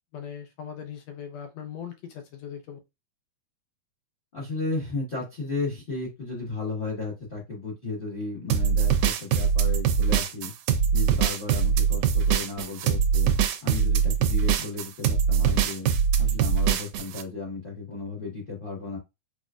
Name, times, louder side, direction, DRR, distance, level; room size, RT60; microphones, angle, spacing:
voice 1, 0.1-2.8, left 8 dB, 80° left, 6 dB, 1.6 m, -39 dB
voice 2, 4.3-10.5 10.9-13.3 13.6-15.9 16.2-19.0, left 3 dB, 50° left, -4 dB, 0.6 m, -34 dB
sound 1, 8.5-17.2, right 7 dB, 90° right, 2.1 m, -22 dB
6.1 x 2.6 x 2.4 m, 0.23 s
omnidirectional pair, 3.5 m